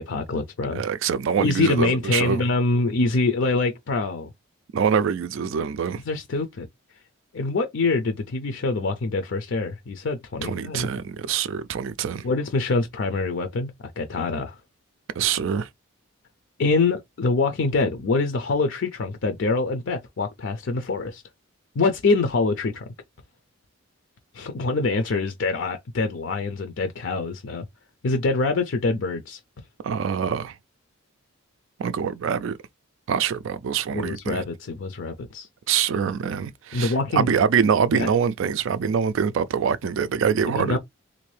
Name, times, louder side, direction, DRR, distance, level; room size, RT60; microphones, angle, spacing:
voice 1, 0.0-0.8 1.4-4.3 6.1-6.7 7.3-10.9 12.2-13.7 14.0-14.6 16.6-21.2 21.8-22.8 24.3-27.6 28.0-29.4 33.9-35.5 36.7-37.3 37.9-38.1 40.5-40.8, left 3 dB, 60° left, 0.5 m, -25 dB
voice 2, 0.7-2.4 4.7-6.0 10.4-12.2 15.2-15.7 29.8-30.5 31.8-32.6 33.1-34.4 35.7-40.8, right 7 dB, 65° right, 0.3 m, -24 dB
3.3 x 2.6 x 3.2 m
head